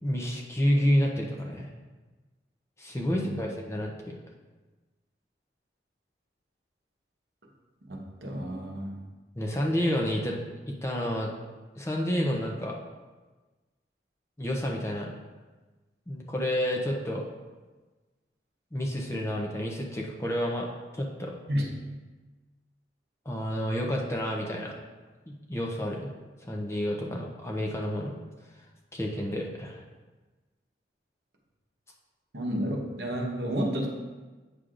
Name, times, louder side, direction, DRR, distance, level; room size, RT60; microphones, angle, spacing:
voice 1, 0.0-1.7 2.8-4.2 9.4-10.4 10.7-11.3 11.8-12.8 14.4-15.1 16.1-17.2 18.7-20.7 20.9-21.3 23.3-24.7 25.3-26.1 26.5-28.1 28.9-29.8, equal, 15° left, -1 dB, 0.6 m, -29 dB
voice 2, 3.0-3.5 7.9-9.0 21.5-21.7 32.3-33.9, equal, 65° right, 0 dB, 1.1 m, -31 dB
8.4 x 6.3 x 2.5 m, 1.2 s
head